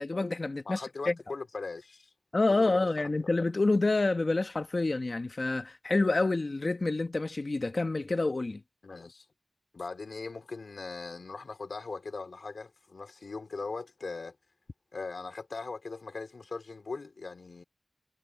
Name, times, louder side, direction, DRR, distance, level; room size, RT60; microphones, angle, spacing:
voice 1, 0.0-1.1 2.3-8.6, left 2 dB, 50° left, 1.4 m, -28 dB
voice 2, 0.6-2.1 2.5-3.3 8.8-9.2 9.7-14.4 14.9-17.6, left 4 dB, 90° left, 3.3 m, -40 dB
wide cardioid pair, 75°, 0 cm